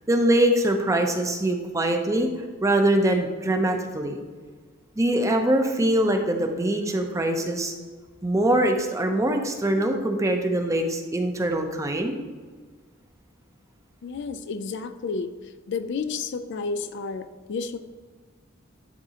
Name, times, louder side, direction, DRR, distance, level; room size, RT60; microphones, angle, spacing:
voice 1, 0.1-2.3 2.6-4.2 5.0-7.7 8.2-12.2, right 1 dB, 15° right, 4 dB, 0.6 m, -23 dB
voice 2, 14.0-15.3 15.7-17.8, left 4 dB, 60° left, 10 dB, 0.4 m, -31 dB
11.0 x 3.7 x 2.9 m, 1.5 s
head